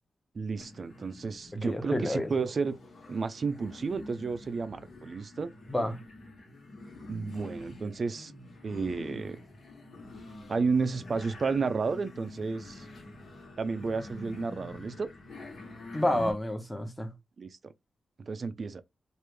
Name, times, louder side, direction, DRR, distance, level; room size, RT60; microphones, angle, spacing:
voice 1, 0.3-2.8 3.1-5.5 7.1-8.3 8.6-9.4 10.5-12.9 13.6-15.1 17.4-17.7 18.2-18.8, right 4 dB, 45° right, 0.4 m, -32 dB
sound 1, 0.6-16.3, left 2 dB, 60° left, 1.4 m, -46 dB
voice 2, 1.6-2.3 5.7-6.0 15.9-17.1, left 1 dB, 10° left, 0.8 m, -29 dB
3.2 x 2.5 x 3.3 m
wide cardioid pair, 110°, 0 cm